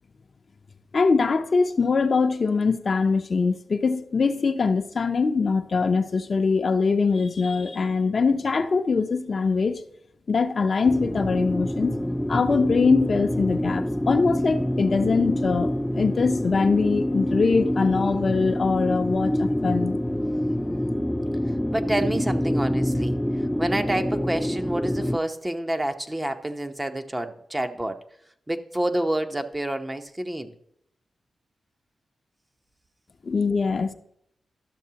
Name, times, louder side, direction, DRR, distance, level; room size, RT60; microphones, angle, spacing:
voice 1, 0.9-9.8 10.3-12.0 12.3-20.0 33.2-33.9, left 4 dB, 55° left, 0.6 m, -23 dB
sound 1, 10.8-25.2, left 1 dB, 5° left, 0.4 m, -26 dB
voice 2, 21.7-23.2 23.6-28.0 28.5-30.5, right 1 dB, 25° right, 0.8 m, -28 dB
12.0 x 6.6 x 2.8 m
supercardioid pair, 45°, 0 cm